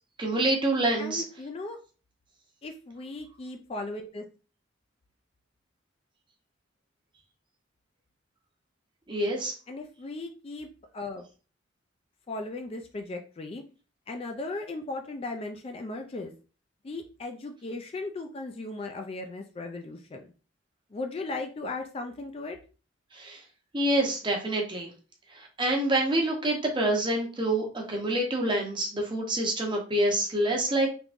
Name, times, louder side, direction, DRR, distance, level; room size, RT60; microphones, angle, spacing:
voice 1, 0.2-1.2 9.1-9.5 23.1-23.4 23.7-24.9 25.3-30.9, right 1 dB, 25° right, 1 dB, 0.7 m, -27 dB
voice 2, 1.0-1.8 2.6-4.3 9.7-10.7 10.9-11.2 12.3-13.6 14.1-16.3 16.8-20.3 20.9-22.6, left 2 dB, 30° left, 5 dB, 0.3 m, -37 dB
3.5 x 2.9 x 2.5 m, 0.36 s
head